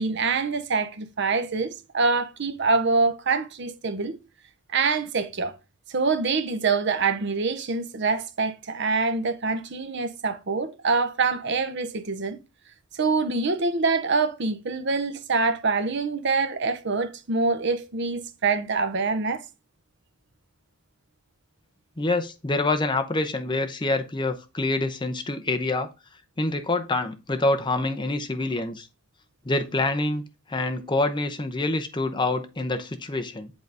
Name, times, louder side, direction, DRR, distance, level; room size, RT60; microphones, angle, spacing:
voice 1, 0.0-4.2 4.7-5.5 5.9-12.4 12.9-19.4, right 4 dB, 55° right, 0.7 m, -25 dB
voice 2, 22.0-25.9 26.4-28.9 29.4-30.2 30.5-33.5, left 2 dB, 20° left, 0.7 m, -26 dB
8.0 x 4.0 x 3.4 m
head